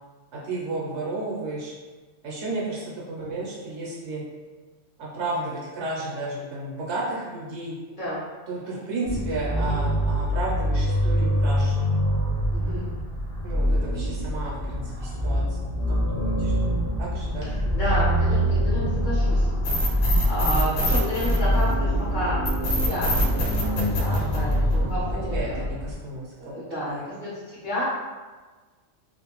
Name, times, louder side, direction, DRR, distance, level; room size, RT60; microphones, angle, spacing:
voice 1, 0.3-1.7 2.2-4.2 5.0-7.7 8.5-11.8 13.4-17.5 24.1-24.9 25.2-27.1, right 2 dB, 65° right, -5 dB, 0.9 m, -33 dB
sound 1, 9.0-25.9, equal, 20° left, 0.4 m, -25 dB
voice 2, 12.5-12.9 17.4-22.4 22.7-25.6 26.4-27.9, equal, 45° left, -10 dB, 0.8 m, -31 dB
sound 2, 19.6-21.9 22.4-24.9, equal, 85° left, 1.1 m, -25 dB
2.5 x 2.1 x 2.9 m, 1.4 s
omnidirectional pair, 1.3 m